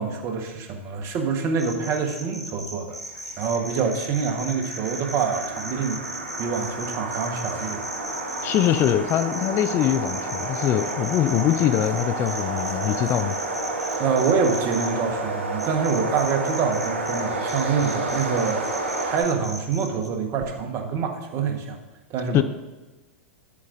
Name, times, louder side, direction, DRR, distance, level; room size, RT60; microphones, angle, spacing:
voice 1, 0.0-3.0 3.4-6.0 6.4-7.8 8.3-8.5 14.0-18.7 19.0-21.8 22.1-22.4, right 5 dB, 40° right, 4 dB, 1.3 m, -26 dB
sound 1, 1.6-14.9 15.6-17.2 17.5-20.1, equal, ahead, 1.2 m, -36 dB
sound 2, 3.0-19.2, right 2 dB, 85° right, 3.1 m, -31 dB
voice 2, 8.4-13.4 22.3-22.4, left 11 dB, 35° left, 12 dB, 0.4 m, -22 dB
11.0 x 8.4 x 2.6 m, 1.1 s
hypercardioid pair, 110°, 7 cm